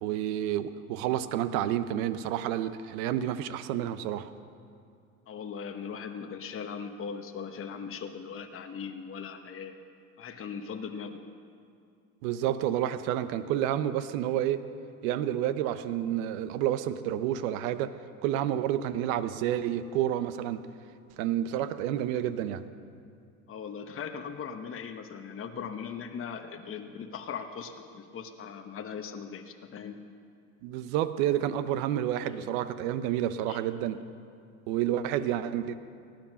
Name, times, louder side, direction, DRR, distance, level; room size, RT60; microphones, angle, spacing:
voice 1, 0.0-4.3 12.2-14.6 15.0-17.9 18.2-20.6 21.2-22.6 30.6-34.0 34.7-35.8, right 11 dB, 65° right, 13 dB, 0.9 m, -29 dB
voice 2, 5.3-9.8 10.2-11.2 23.5-30.0 32.2-32.5 33.5-33.6, left 6 dB, 30° left, 5 dB, 1.1 m, -39 dB
18.5 x 10.5 x 5.5 m, 2.4 s
hypercardioid pair, 70°, 43 cm